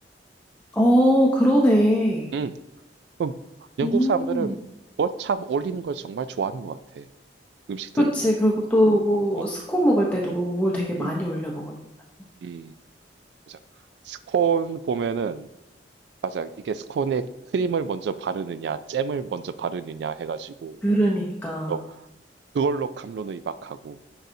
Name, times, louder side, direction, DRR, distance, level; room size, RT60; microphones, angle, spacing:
voice 1, 0.7-2.3 3.8-4.5 8.0-11.8 20.8-21.7, equal, 10° left, -2 dB, 0.6 m, -21 dB
voice 2, 3.8-4.6 5.0-7.1 7.7-8.1 9.3-9.5 11.0-11.2 12.4-12.7 13.5-13.6 14.1-15.5 16.2-17.2 17.5-20.8 21.7-22.0 22.5-24.0, right 6 dB, 70° right, 13 dB, 0.3 m, -28 dB
10.5 x 4.0 x 2.7 m, 0.91 s
head